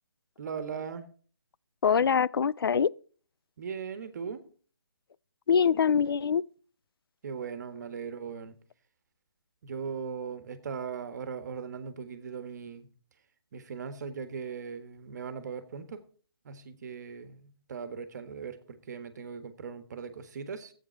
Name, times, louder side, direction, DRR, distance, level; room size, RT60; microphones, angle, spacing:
voice 1, 0.4-1.0 3.6-4.4 7.2-8.5 9.6-12.9 13.5-16.0 16.4-20.7, right 6 dB, 45° right, 1.5 m, -39 dB
voice 2, 1.8-2.9 5.5-6.4, left 7 dB, 65° left, 0.4 m, -24 dB
13.5 x 8.8 x 4.5 m
hypercardioid pair, 155°, 13 cm